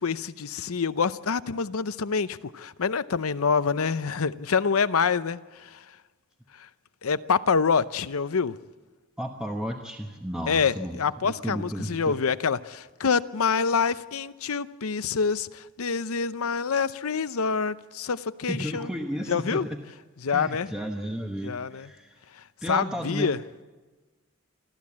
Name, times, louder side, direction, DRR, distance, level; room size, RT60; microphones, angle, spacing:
voice 1, 0.0-5.8 6.6-6.7 7.0-8.6 10.5-18.9 19.3-19.7 20.2-20.7 21.4-21.9 22.3-23.4, left 5 dB, 85° left, 0.7 m, -26 dB
voice 2, 9.2-11.0 11.2-12.2 18.5-19.8 20.3-22.2 22.6-23.3, equal, 5° right, 1.1 m, -33 dB
26.0 x 14.0 x 8.6 m
head